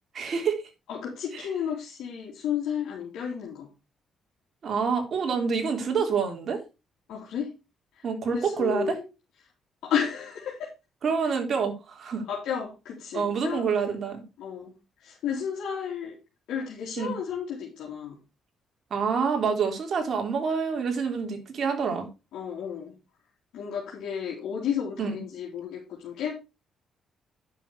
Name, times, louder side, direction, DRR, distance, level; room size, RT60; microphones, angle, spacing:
voice 1, 0.1-0.6 1.3-1.5 4.6-6.6 8.0-9.0 11.0-12.2 13.1-14.2 17.0-17.1 18.9-22.1 25.0-25.2, right 5 dB, 55° right, 3 dB, 3.4 m, -27 dB
voice 2, 0.9-3.7 7.1-7.5 8.0-8.1 8.3-9.0 9.8-10.7 11.2-11.3 12.3-13.7 14.4-14.7 15.0-16.1 16.5-18.2 22.3-22.9 23.5-26.3, left 8 dB, 80° left, -4 dB, 3.2 m, -32 dB
10.0 x 6.6 x 4.7 m, 0.28 s
cardioid pair, 90°, 0 cm